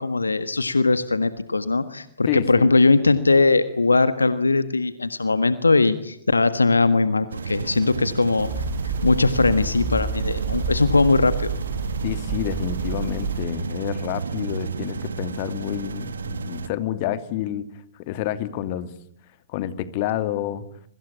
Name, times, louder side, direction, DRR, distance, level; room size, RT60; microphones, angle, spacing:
voice 1, 0.0-8.5 8.8-11.5, left 3 dB, 80° left, 13 dB, 1.5 m, -20 dB
voice 2, 2.3-2.7 12.0-17.7 18.0-18.9 19.5-20.6, left 11 dB, 40° left, 12 dB, 2.6 m, -28 dB
sound 1, 7.3-16.7, right 5 dB, 70° right, 1.8 m, -32 dB
sound 2, 8.4-13.4, right 5 dB, 35° right, 7.5 m, -29 dB
27.0 x 24.5 x 8.6 m, 0.70 s
figure-of-eight pair, 110°, 0 cm